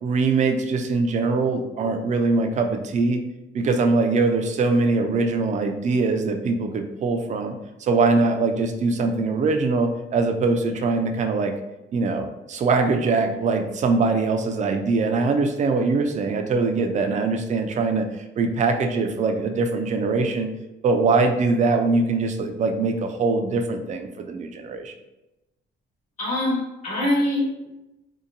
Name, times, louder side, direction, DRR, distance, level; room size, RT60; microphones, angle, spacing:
voice 1, 0.0-3.2 3.5-7.5 7.8-11.5 11.9-18.1 18.4-20.5 20.8-24.9, right 3 dB, 35° right, 5 dB, 0.4 m, -22 dB
voice 2, 26.2-27.7, left 1 dB, 35° left, -7 dB, 1.1 m, -24 dB
2.8 x 2.2 x 2.5 m, 0.96 s
cardioid pair, 90°, 20 cm